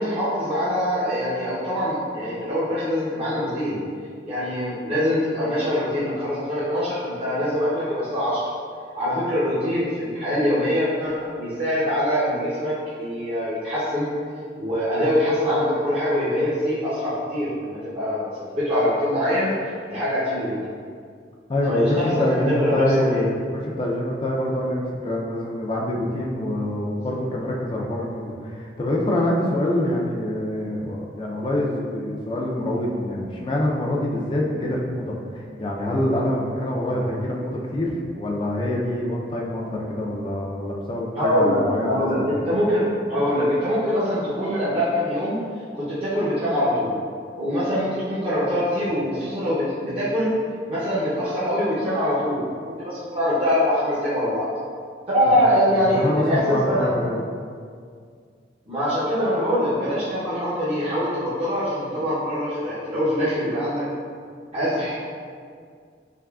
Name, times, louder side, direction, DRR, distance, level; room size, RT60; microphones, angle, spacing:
voice 1, 0.0-3.8 4.2-8.4 8.9-14.1 14.6-20.6 21.7-23.2 41.2-45.4 45.7-47.0 47.4-50.3 50.7-52.5 52.8-54.5 55.1-56.9 58.7-63.8 64.5-64.9, equal, 35° right, -11 dB, 0.6 m, -23 dB
voice 2, 21.5-42.3 55.3-55.4 55.7-57.2, left 1 dB, 30° left, -2 dB, 0.4 m, -25 dB
3.5 x 3.1 x 2.3 m, 2.1 s
head